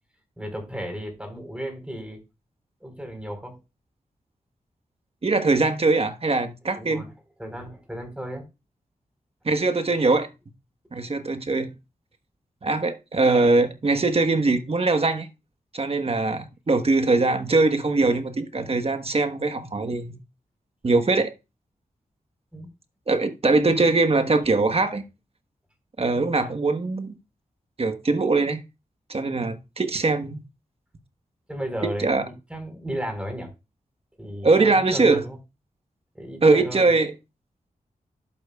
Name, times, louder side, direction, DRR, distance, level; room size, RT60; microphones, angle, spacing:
voice 1, 0.4-2.2 2.8-3.6 6.8-7.1 7.4-8.4 22.5-22.7 23.6-23.9 26.4-26.5 31.5-33.5 34.2-35.4 36.1-36.9, equal, 10° right, 4.2 m, -34 dB
voice 2, 5.2-7.1 9.4-10.3 10.9-11.7 12.6-15.3 15.7-20.2 20.8-21.3 23.1-25.0 26.0-27.2 27.8-28.6 29.1-30.4 32.0-32.2 34.4-35.2 36.4-37.1, right 3 dB, 45° right, 1.2 m, -22 dB
11.0 x 8.6 x 2.4 m
wide cardioid pair, 85°, 15 cm